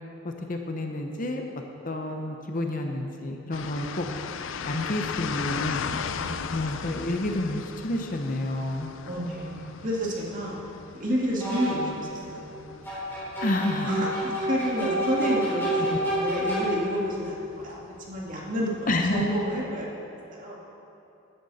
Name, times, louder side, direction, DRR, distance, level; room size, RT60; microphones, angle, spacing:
voice 1, 0.2-1.4 1.8-4.1 4.6-5.8 6.5-9.0 13.4-14.1 15.9-16.0 18.9-19.3, left 1 dB, 40° left, 3 dB, 0.8 m, -29 dB
sound 1, 3.5-19.6, left 6 dB, 60° left, 0.4 m, -39 dB
voice 2, 9.0-10.6 10.9-12.8 13.8-14.1 14.4-17.8 18.1-20.6, equal, 35° right, -3 dB, 2.2 m, -30 dB
sound 2, 9.3-9.4 11.4-12.0 12.9-17.1, right 1 dB, 10° left, 3.5 m, -29 dB
15.5 x 10.5 x 4.2 m, 2.8 s
head